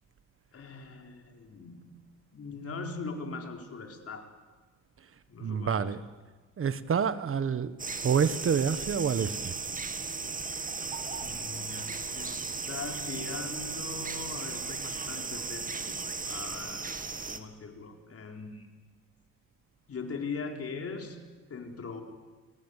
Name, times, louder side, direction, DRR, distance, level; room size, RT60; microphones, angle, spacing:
voice 1, 0.5-1.9 2.3-4.2 5.3-6.0 11.2-12.4 12.7-17.0 17.3-18.7 19.9-21.2 21.5-22.0, left 4 dB, 50° left, 3 dB, 4.5 m, -40 dB
voice 2, 5.4-6.0 6.6-7.7 8.0-9.5, right 7 dB, 45° right, 14 dB, 1.4 m, -28 dB
sound 1, 7.8-17.4, right 4 dB, 25° right, 2.0 m, -36 dB
28.5 x 19.5 x 8.3 m, 1.3 s
cardioid pair, 90°, 31 cm